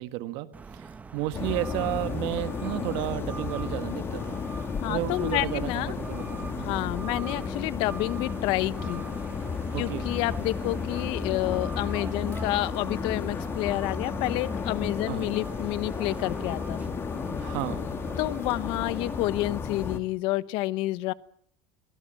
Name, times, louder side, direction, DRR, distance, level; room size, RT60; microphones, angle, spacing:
voice 1, 0.0-4.4 4.9-6.9 9.7-10.1 15.1-15.3 17.4-17.9, right 16 dB, 65° right, 1.6 m, -33 dB
sound 1, 0.5-19.3, right 4 dB, 15° right, 1.2 m, -43 dB
sound 2, 1.3-20.0, left 6 dB, 25° left, 1.8 m, -33 dB
voice 2, 4.8-5.9 6.6-9.0 9.8-16.9 18.2-21.1, left 18 dB, 65° left, 1.0 m, -29 dB
23.0 x 17.5 x 9.2 m
cardioid pair, 145°, 9 cm